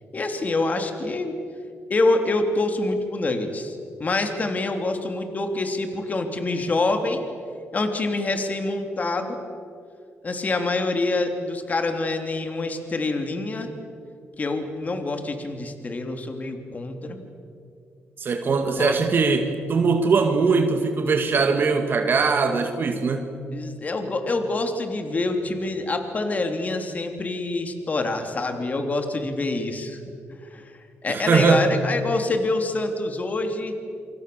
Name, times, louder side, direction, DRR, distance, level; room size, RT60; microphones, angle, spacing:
voice 1, 0.1-1.4 1.9-7.2 7.7-9.4 10.2-13.7 14.4-17.2 18.7-18.9 23.5-30.0 30.4-33.7, left 2 dB, 35° left, 6 dB, 3.1 m, -26 dB
voice 2, 18.2-23.3 31.1-31.6, right 4 dB, 50° right, 5 dB, 2.2 m, -21 dB
27.5 x 26.0 x 7.0 m, 2.4 s
cardioid pair, 95°, 4 cm